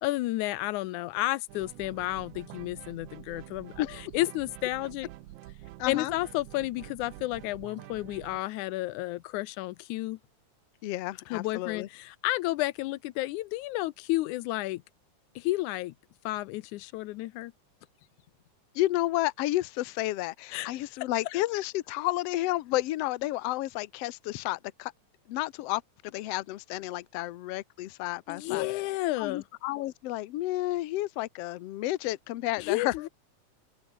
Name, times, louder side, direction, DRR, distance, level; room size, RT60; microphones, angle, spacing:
voice 1, 0.0-3.8 4.1-5.1 5.9-10.2 11.3-14.8 15.4-15.9 16.3-17.5 20.5-20.7 21.3-21.4 28.3-29.4 32.6-33.1, left 18 dB, 85° left, 2.2 m, -31 dB
sound 1, 1.5-8.4, right 16 dB, 85° right, 2.2 m, -47 dB
voice 2, 5.8-6.1 10.8-11.9 18.8-24.9 25.3-28.6 29.2-33.1, left 17 dB, 65° left, 1.7 m, -31 dB
open air
omnidirectional pair, 3.4 m